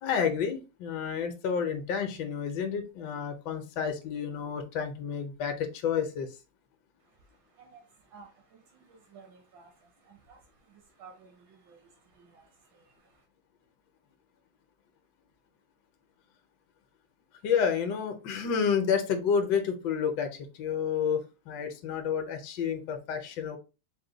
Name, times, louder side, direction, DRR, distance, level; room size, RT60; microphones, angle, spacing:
voice 1, 0.0-6.4 17.4-23.6, left 7 dB, 75° left, 1.3 m, -30 dB
voice 2, 7.0-13.2, right 5 dB, 80° right, 1.5 m, -56 dB
4.8 x 2.2 x 3.8 m
omnidirectional pair, 2.0 m